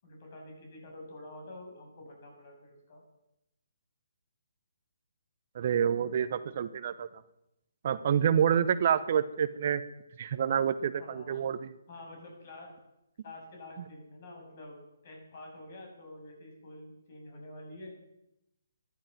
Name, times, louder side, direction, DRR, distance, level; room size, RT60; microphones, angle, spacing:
voice 1, 0.0-3.0 5.7-6.1 11.0-11.4 11.9-12.7 13.2-14.8 15.0-18.0, left 1 dB, 45° left, 1 dB, 7.3 m, -48 dB
voice 2, 5.5-7.1 7.8-9.8 10.2-11.6, right 8 dB, 50° right, 14 dB, 0.8 m, -27 dB
14.0 x 11.5 x 7.5 m, 0.87 s
figure-of-eight pair, 140°, 0 cm